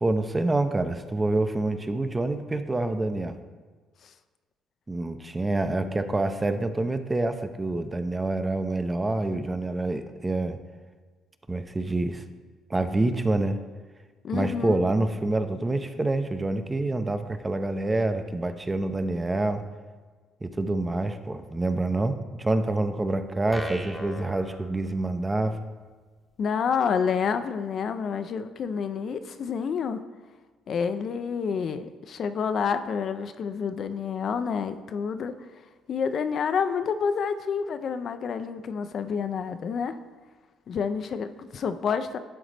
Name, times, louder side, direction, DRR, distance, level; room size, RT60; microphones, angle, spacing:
voice 1, 0.0-3.4 4.9-10.6 11.5-12.2 12.7-13.6 14.3-19.7 20.4-25.6, right 2 dB, 20° right, 9 dB, 0.5 m, -27 dB
voice 2, 14.2-14.9 26.4-30.0 30.7-35.3 35.9-40.0 40.7-42.2, left 6 dB, 55° left, 10 dB, 0.4 m, -28 dB
sound 1, 23.5-25.4, equal, 5° left, 0.8 m, -39 dB
11.0 x 3.9 x 3.3 m, 1.4 s
cardioid pair, 80°, 0 cm